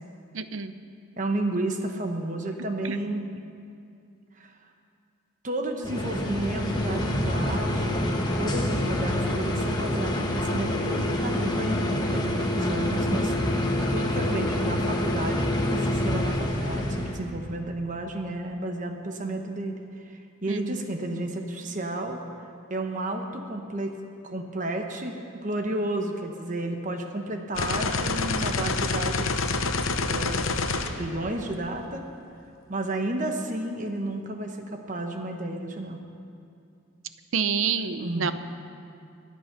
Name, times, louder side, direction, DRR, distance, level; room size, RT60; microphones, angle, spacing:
voice 1, 0.3-0.7 1.5-1.6 2.8-3.0 20.5-20.9 37.3-38.3, right 6 dB, 75° right, 11 dB, 0.7 m, -28 dB
voice 2, 1.2-3.3 4.4-4.5 5.4-13.3 13.9-22.2 22.7-24.0 24.2-25.1 25.4-29.4 30.1-30.5 30.8-32.0 32.7-36.0 38.0-38.3, right 1 dB, 35° right, 4 dB, 1.0 m, -32 dB
sound 1, 5.8-17.2, left 1 dB, 20° left, 1.3 m, -27 dB
sound 2, 27.5-31.7, left 3 dB, 75° left, 0.9 m, -27 dB
24.0 x 8.5 x 5.9 m, 2.4 s
head